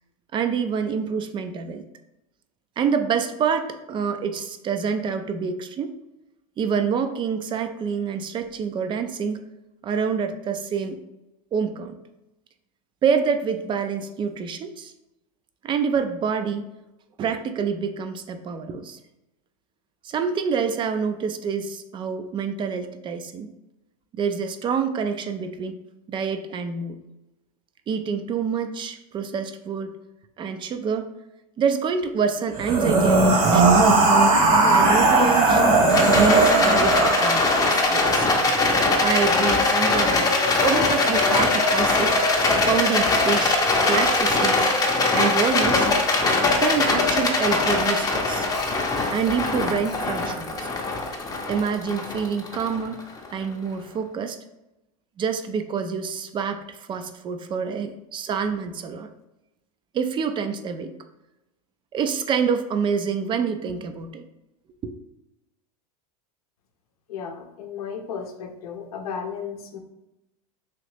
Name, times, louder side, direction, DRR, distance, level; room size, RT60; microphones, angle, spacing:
voice 1, 0.3-1.8 2.8-5.9 6.6-9.5 9.8-11.0 11.5-11.9 13.0-14.9 15.6-16.6 17.2-19.0 20.0-23.5 24.1-25.8 26.1-27.0 27.9-29.9 30.4-31.1 31.6-33.7 34.6-35.6 36.1-38.3 39.0-40.3 40.6-42.2 42.6-44.7 45.1-45.9 46.6-48.5 49.1-50.7 51.5-53.0 53.3-54.4 55.2-59.1 59.9-60.9 61.9-64.2 64.8-64.9, right 6 dB, 25° right, 8 dB, 0.4 m, -27 dB
sound 1, 32.5-37.8, right 3 dB, 50° right, 1.1 m, -18 dB
Rattle, 35.9-53.3, left 2 dB, 20° left, 0.6 m, -21 dB
voice 2, 67.1-69.8, left 6 dB, 80° left, 5 dB, 0.6 m, -34 dB
3.1 x 2.8 x 3.1 m, 0.95 s
hypercardioid pair, 105°, 18 cm